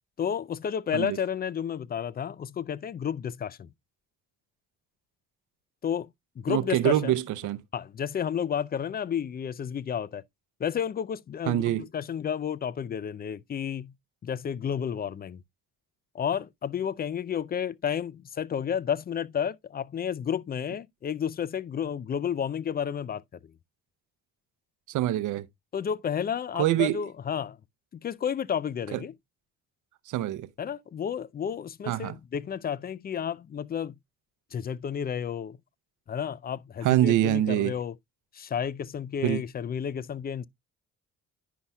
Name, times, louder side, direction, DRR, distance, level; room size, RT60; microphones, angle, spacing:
voice 1, 0.2-3.7 5.8-6.1 6.4-7.2 7.7-10.2 10.6-13.9 14.2-15.4 16.1-23.2 25.7-27.6 28.0-29.1 30.6-34.0 34.5-35.6 36.1-37.9 38.3-40.5, left 8 dB, 30° left, 0.4 m, -31 dB
voice 2, 6.5-7.6 11.5-11.9 24.9-25.5 26.6-27.0 28.9-29.0 30.1-30.5 31.9-32.1 36.8-37.8 39.2-39.4, right 13 dB, 80° right, 0.6 m, -25 dB
10.0 x 5.4 x 2.2 m
cardioid pair, 90°, 30 cm